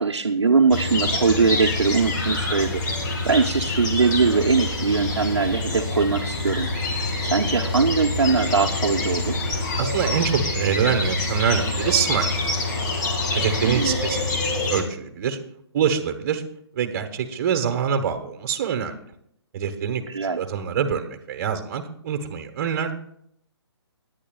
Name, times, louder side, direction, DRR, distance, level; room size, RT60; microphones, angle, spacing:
voice 1, 0.0-2.7 3.3-9.4 13.7-14.0 20.1-20.4, right 4 dB, 80° right, 1 dB, 0.9 m, -21 dB
sound 1, 0.7-14.8, left 2 dB, 40° left, 2.3 m, -26 dB
voice 2, 9.8-12.4 13.3-14.4 14.7-15.4 15.7-16.4 16.7-19.0 19.5-22.9, right 7 dB, 35° right, 6 dB, 1.4 m, -25 dB
19.0 x 9.9 x 2.4 m, 0.69 s
figure-of-eight pair, 145°, 14 cm